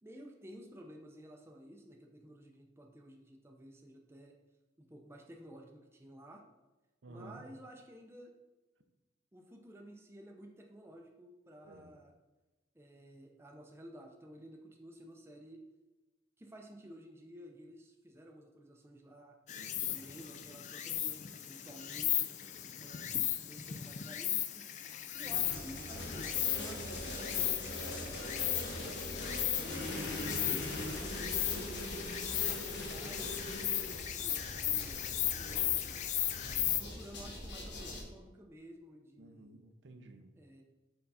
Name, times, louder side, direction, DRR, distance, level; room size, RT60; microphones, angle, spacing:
voice 1, 0.0-4.3 4.8-6.4 7.1-8.3 9.3-12.1 12.7-15.6 16.4-19.4 19.9-22.3 22.8-24.6 25.1-28.3 28.6-29.9 30.3-32.1 32.5-35.0 35.4-36.0 36.8-39.6 40.4-40.6, equal, 15° right, 1 dB, 0.5 m, -53 dB
voice 2, 7.0-7.5 11.6-12.0 19.5-20.0 25.6-25.9 28.8-29.2 36.3-36.9 39.2-40.4, right 2 dB, 75° right, 6 dB, 0.6 m, -54 dB
Insect, 19.5-36.8, left 12 dB, 40° left, 0.3 m, -36 dB
sound 1, 25.2-38.0, left 1 dB, 70° left, 1.1 m, -41 dB
4.6 x 3.7 x 5.5 m, 1.1 s
head